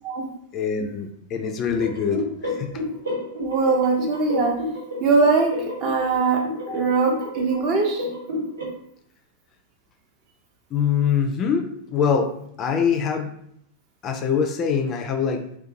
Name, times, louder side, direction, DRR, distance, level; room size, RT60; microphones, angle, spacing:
voice 1, 0.5-2.7 6.7-7.0 10.7-12.3 12.6-13.3 14.0-15.6, left 6 dB, 30° left, 5 dB, 0.3 m, -24 dB
sound 1, 1.8-8.7, left 2 dB, 75° right, 1.0 m, -31 dB
voice 2, 3.4-4.5 5.0-5.5 5.8-6.4 6.7-8.1, right 4 dB, 40° right, 0 dB, 0.6 m, -21 dB
2.5 x 2.2 x 2.7 m, 0.72 s
figure-of-eight pair, 90°, 0 cm